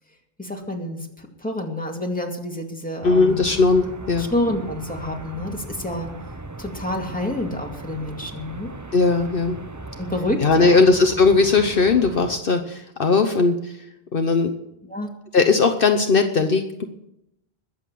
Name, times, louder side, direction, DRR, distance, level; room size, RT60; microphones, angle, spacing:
voice 1, 0.4-3.4 4.2-6.1 6.6-8.7 10.0-10.8 14.9-15.1, left 1 dB, 10° left, 1 dB, 2.3 m, -28 dB
voice 2, 3.0-4.3 8.9-9.6 10.4-13.9 14.1-14.5 15.3-16.8, left 4 dB, 60° left, 7 dB, 1.1 m, -18 dB
sound 1, 3.0-12.4, right 2 dB, 20° right, 0.8 m, -38 dB
21.0 x 7.8 x 7.6 m, 0.83 s
omnidirectional pair, 1.1 m